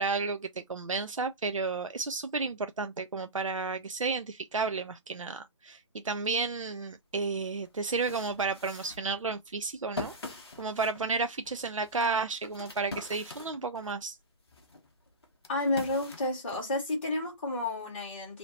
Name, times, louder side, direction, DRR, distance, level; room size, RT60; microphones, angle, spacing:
voice 1, 0.0-14.2, right 4 dB, 75° right, 0.5 m, -32 dB
sound 1, 7.1-7.2 7.7-14.0 14.5-17.1, left 2 dB, 50° left, 1.0 m, -44 dB
voice 2, 15.5-18.4, left 2 dB, 20° left, 1.9 m, -31 dB
4.2 x 2.8 x 2.8 m
figure-of-eight pair, 155°, 17 cm